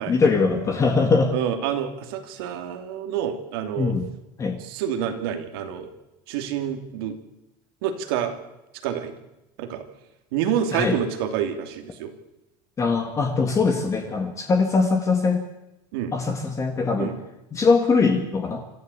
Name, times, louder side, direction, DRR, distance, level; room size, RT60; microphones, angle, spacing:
voice 1, 0.0-1.3 3.8-4.1 4.4-4.6 10.7-11.0 12.8-15.4 16.1-17.1 17.5-18.6, left 4 dB, 25° left, 4 dB, 2.0 m, -21 dB
voice 2, 1.3-4.0 4.6-5.9 6.3-7.1 7.8-8.3 8.8-9.1 9.6-9.8 10.3-12.1 15.9-16.1 17.0-17.2, right 9 dB, 85° right, 7 dB, 2.7 m, -28 dB
26.0 x 13.5 x 8.4 m, 0.96 s
supercardioid pair, 130°, 12 cm